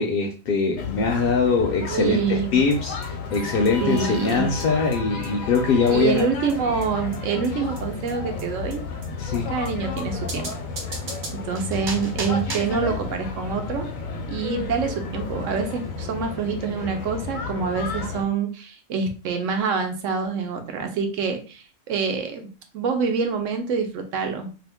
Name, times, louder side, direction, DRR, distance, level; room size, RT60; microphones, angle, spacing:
voice 1, 0.0-6.2 9.2-9.5, left 4 dB, 60° left, 2 dB, 0.6 m, -22 dB
sound 1, 0.8-18.2, left 4 dB, 80° left, 1.1 m, -32 dB
voice 2, 1.9-2.6 3.8-4.5 5.9-8.8 9.5-10.5 11.3-13.9 14.3-22.5 22.7-24.5, right 5 dB, 75° right, 5 dB, 1.0 m, -26 dB
sound 2, 2.7-2.8 3.0-3.1 3.3-3.4 3.7-3.8 4.0-4.1 4.3-4.4 4.6-4.7 4.9-5.0 5.2-5.3 5.5-5.6 5.9-6.0 6.2-6.3 6.5-6.6 6.8-6.9 7.1-7.2 7.4-7.5 7.8-7.9 8.1-8.2 8.4-8.5 8.7-8.8 9.0-9.1 9.3-9.4 9.7-9.8 10.0-10.1 10.3-12.8, right 3 dB, 45° right, 0.7 m, -36 dB
2.8 x 2.4 x 3.5 m, 0.35 s
omnidirectional pair, 1.4 m